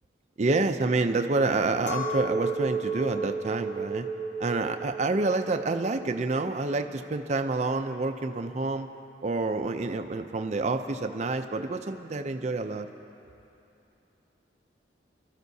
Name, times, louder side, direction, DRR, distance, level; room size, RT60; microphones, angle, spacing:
voice 1, 0.4-4.1 4.4-8.9 9.2-12.9, right 3 dB, 40° right, 6 dB, 0.5 m, -28 dB
Chink clink, 1.9-7.3, right 3 dB, 55° left, 1.5 m, -34 dB
26.5 x 12.5 x 2.7 m, 2.8 s
head